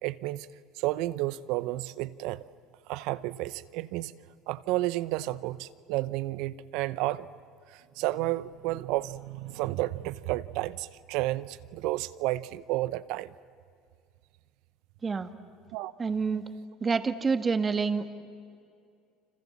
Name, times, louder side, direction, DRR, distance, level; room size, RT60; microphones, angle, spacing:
voice 1, 0.0-0.5 0.7-2.4 2.9-4.1 4.5-7.3 7.7-13.3 15.7-15.9, right 17 dB, 70° right, 16 dB, 0.8 m, -31 dB
voice 2, 16.0-16.5 16.8-18.1, right 5 dB, 30° right, 9 dB, 1.9 m, -27 dB
29.0 x 26.5 x 7.3 m, 2.3 s
supercardioid pair, 85°, 0 cm